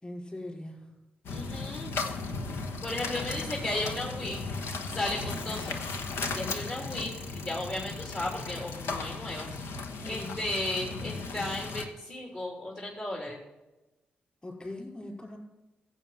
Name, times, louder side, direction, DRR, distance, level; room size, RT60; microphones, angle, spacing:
voice 1, 0.0-0.9 10.0-10.4 14.4-15.4, left 1 dB, 25° left, 0 dB, 5.1 m, -41 dB
sound 1, 1.2-11.9, left 4 dB, 70° left, 1.1 m, -36 dB
voice 2, 1.3-1.9 2.8-4.4 4.9-5.8 6.3-9.5 10.1-13.4, left 1 dB, 40° left, -2 dB, 3.2 m, -35 dB
15.5 x 7.8 x 5.7 m, 1.0 s
hypercardioid pair, 40°, 4 cm